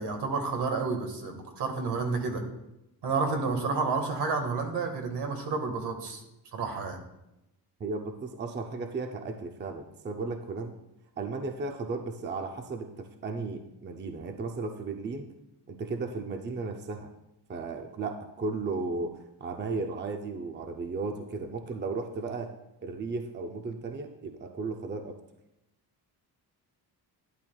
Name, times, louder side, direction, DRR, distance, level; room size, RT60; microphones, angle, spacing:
voice 1, 0.0-2.4 3.0-6.2 6.5-7.0, right 4 dB, 75° right, 4 dB, 1.8 m, -30 dB
voice 2, 7.8-10.7 11.2-15.3 15.7-17.1 17.5-22.5 22.8-25.2, right 3 dB, 25° right, 5 dB, 0.5 m, -35 dB
11.5 x 10.5 x 2.3 m, 0.89 s
cardioid pair, 150°, 41 cm